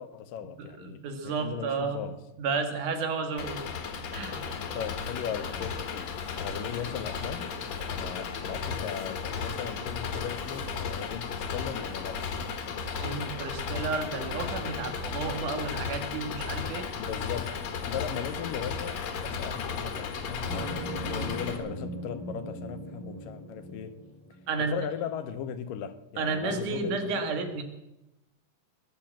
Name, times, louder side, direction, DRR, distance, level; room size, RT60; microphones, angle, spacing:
voice 1, 0.0-2.2 4.7-7.5 7.9-12.3 17.0-24.0 24.7-27.4, left 8 dB, 80° left, 2.6 m, -38 dB
voice 2, 0.6-2.0 2.4-3.6 4.1-4.4 13.0-16.9 24.5-24.7 26.2-27.6, right 4 dB, 70° right, 3.1 m, -32 dB
Engine, 3.4-21.6, left 5 dB, 60° left, 2.4 m, -34 dB
sound 1, 20.5-24.9, right 1 dB, 50° right, 5.5 m, -40 dB
20.5 x 7.6 x 8.8 m
omnidirectional pair, 3.9 m